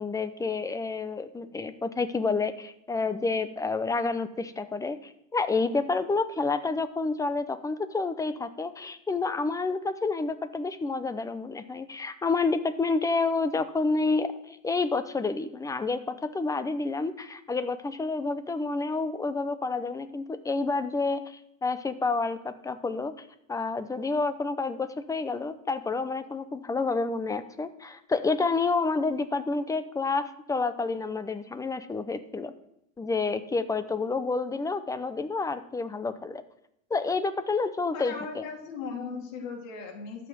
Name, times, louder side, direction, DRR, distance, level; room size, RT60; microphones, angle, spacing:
voice 1, 0.0-32.5 33.0-36.4 36.9-38.4, left 3 dB, 10° left, 12 dB, 0.6 m, -29 dB
voice 2, 37.9-40.3, left 5 dB, 70° left, 2 dB, 2.9 m, -38 dB
13.0 x 5.8 x 7.8 m, 0.79 s
supercardioid pair, 125°, 40 cm